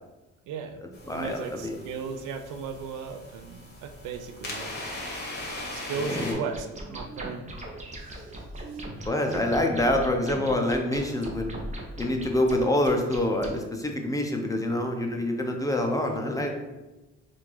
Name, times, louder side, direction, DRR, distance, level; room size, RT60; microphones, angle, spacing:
voice 1, 0.5-0.8 1.1-4.7 5.7-6.7 6.9-7.5 8.0-8.8, right 6 dB, 90° right, 7 dB, 0.5 m, -36 dB
sound 1, 0.9-6.3, left 1 dB, 35° left, 1.4 m, -39 dB
voice 2, 1.0-1.8 6.0-6.4 8.8-11.5 12.0-16.5, left 1 dB, 10° left, 2 dB, 0.6 m, -26 dB
sound 2, 6.5-13.6, right 1 dB, 25° right, 0.8 m, -39 dB
3.5 x 2.5 x 4.6 m, 1.1 s
cardioid pair, 90°, 30 cm